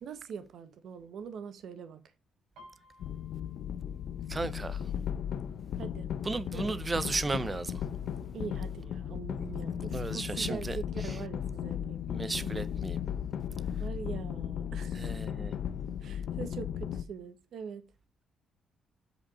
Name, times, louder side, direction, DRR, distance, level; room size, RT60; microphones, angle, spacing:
voice 1, 0.0-2.0 5.8-6.1 6.5-6.7 8.3-12.6 13.8-15.1 16.0-17.9, right 6 dB, 60° right, 1.3 m, -43 dB
Piano, 2.6-6.2 6.6-7.0 7.3-7.9 8.5-8.6 8.9-9.9 10.3-10.4, left 1 dB, 85° right, 3.2 m, -60 dB
sound 1, 3.0-17.0, left 9 dB, 65° left, 0.6 m, -36 dB
voice 2, 4.3-4.9 6.2-7.8 9.9-11.2 12.1-13.0 15.0-15.6, right 3 dB, 20° right, 0.6 m, -35 dB
8.1 x 5.0 x 4.3 m
cardioid pair, 140°, 0 cm